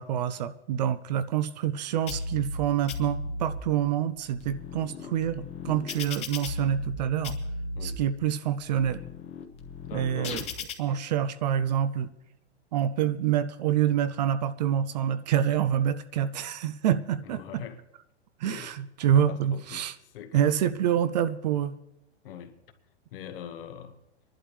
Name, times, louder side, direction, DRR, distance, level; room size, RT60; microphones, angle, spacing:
voice 1, 0.0-7.4 7.8-9.0 9.9-10.4 10.8-12.1 12.7-17.6 18.4-19.9 20.3-21.8, right 10 dB, 40° right, 0.4 m, -27 dB
sound 1, 2.1-2.6 2.9-3.6 4.2-7.0 7.2-8.0 8.5-10.7, left 3 dB, 20° left, 1.0 m, -36 dB
voice 2, 9.8-10.4 10.8-11.3 17.2-17.8 18.4-18.7 19.0-20.6 22.2-22.6 23.1-24.0, left 9 dB, 55° left, 1.2 m, -43 dB
24.0 x 11.5 x 3.2 m
hypercardioid pair, 155°, 33 cm